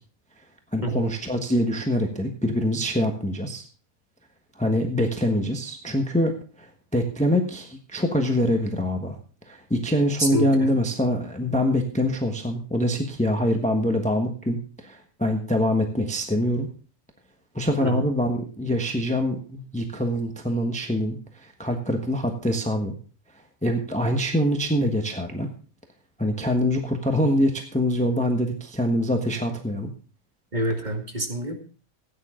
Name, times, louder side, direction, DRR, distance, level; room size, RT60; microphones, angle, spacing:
voice 1, 0.7-3.6 4.6-9.2 9.5-16.7 17.5-22.9 23.6-25.5 26.2-29.9, left 1 dB, 5° left, 4 dB, 1.2 m, -24 dB
voice 2, 30.5-31.6, right 1 dB, 30° right, 2 dB, 2.2 m, -26 dB
16.0 x 9.6 x 3.7 m, 0.38 s
omnidirectional pair, 1.5 m